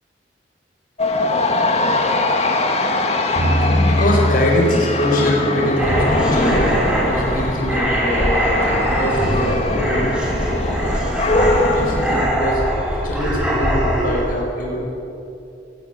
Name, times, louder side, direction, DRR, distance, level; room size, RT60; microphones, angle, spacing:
sound 1, 1.0-12.3, left 2 dB, 40° left, 2.0 m, -22 dB
sound 2, 3.4-6.5, left 1 dB, 35° right, 4.5 m, -22 dB
voice 1, 3.6-10.3 11.7-14.8, left 1 dB, 55° left, -1 dB, 5.0 m, -23 dB
sound 3, 5.8-14.2, equal, 5° right, 6.8 m, -21 dB
18.0 x 15.5 x 9.9 m, 2.8 s
head